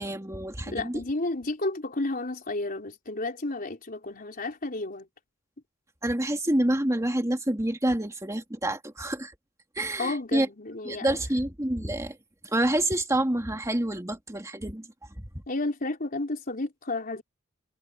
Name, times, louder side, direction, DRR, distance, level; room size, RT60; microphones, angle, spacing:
voice 1, 0.0-1.0 6.0-9.3 9.8-10.5 10.9-12.2 12.4-14.9 15.2-15.4, right 1 dB, 15° right, 2.2 m, -28 dB
voice 2, 0.7-5.1 10.0-11.2 15.5-17.2, left 2 dB, 45° left, 3.9 m, -32 dB
head